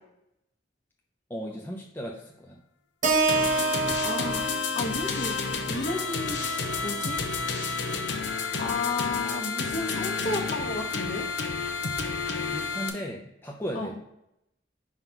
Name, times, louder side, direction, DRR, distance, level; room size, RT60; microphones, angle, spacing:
voice 1, 1.3-2.6 12.5-13.9, equal, 10° left, -1 dB, 0.6 m, -36 dB
Keyboard (musical), 3.0-7.3, right 3 dB, 45° right, 0.8 m, -29 dB
sound 1, 3.3-12.9, left 4 dB, 75° left, 0.8 m, -30 dB
voice 2, 3.4-5.4 5.6-7.2 8.5-11.3 13.7-13.9, left 3 dB, 45° left, 0 dB, 1.2 m, -33 dB
5.5 x 4.0 x 4.6 m, 0.83 s
head